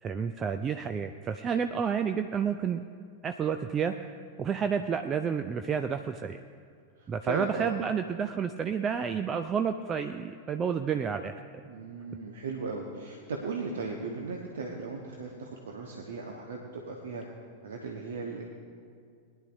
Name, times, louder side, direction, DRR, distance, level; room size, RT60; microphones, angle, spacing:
voice 1, 0.0-2.8 3.2-4.1 4.4-6.4 7.1-11.4, right 7 dB, 25° right, 8 dB, 0.4 m, -30 dB
voice 2, 7.0-7.8 11.7-17.2 17.6-18.4, right 4 dB, 65° right, 0 dB, 1.1 m, -37 dB
20.5 x 11.0 x 2.6 m, 2.3 s
figure-of-eight pair, 90°, 0 cm